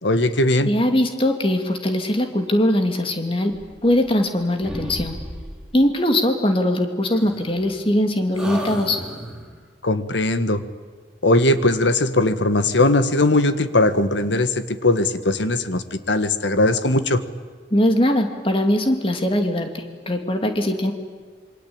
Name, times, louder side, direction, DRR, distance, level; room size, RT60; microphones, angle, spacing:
voice 1, 0.0-0.7 9.8-10.6 11.2-17.2, left 2 dB, 90° left, 11 dB, 1.6 m, -19 dB
voice 2, 0.6-3.5 3.8-5.2 5.7-9.0 17.7-20.9, left 1 dB, 30° left, 5 dB, 2.7 m, -21 dB
sound 1, 3.5-4.4 4.6-5.8 7.1-8.0 8.3-9.6, equal, 5° right, 3.6 m, -34 dB
27.0 x 24.0 x 8.9 m, 1.5 s
head